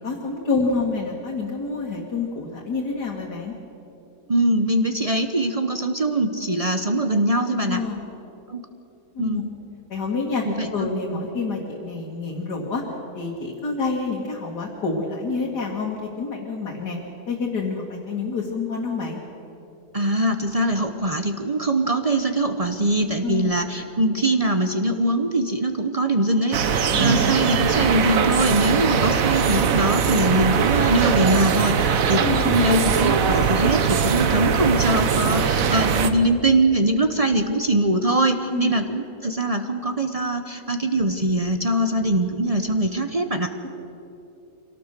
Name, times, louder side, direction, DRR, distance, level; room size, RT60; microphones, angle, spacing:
voice 1, 0.0-3.6 7.7-8.0 9.1-9.4 9.9-10.5 10.7-12.8 13.1-17.0 17.3-19.2 23.2-23.5 26.9-27.1 32.2-32.6 38.5-38.7 43.6-43.7, left 4 dB, 85° left, -3 dB, 2.6 m, -27 dB
voice 2, 4.3-7.8 8.5-8.6 9.2-9.5 10.4-10.9 19.9-43.5, right 1 dB, 35° right, 7 dB, 0.6 m, -22 dB
sound 1, 26.5-36.1, right 6 dB, 60° right, 1.3 m, -21 dB
24.5 x 17.5 x 6.7 m, 2.9 s
omnidirectional pair, 1.7 m